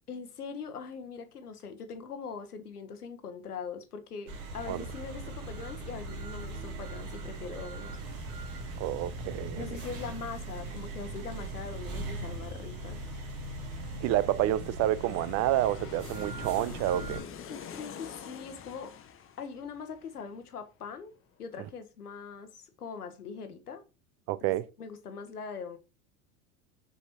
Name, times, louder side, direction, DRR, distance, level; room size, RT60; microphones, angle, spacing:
voice 1, 0.1-8.0 9.5-13.0 17.5-18.9 19.4-23.8 24.4-24.5 24.8-25.8, left 5 dB, 90° left, 1.1 m, -42 dB
sound 1, 4.3-17.2, right 2 dB, 65° right, 2.3 m, -40 dB
voice 2, 8.8-9.7 14.0-17.2 24.3-24.7, right 14 dB, 35° right, 0.4 m, -29 dB
Aircraft, 10.2-20.9 21.2-21.3, left 8 dB, 30° left, 0.9 m, -48 dB
6.2 x 5.6 x 2.9 m
hypercardioid pair, 80°, 45 cm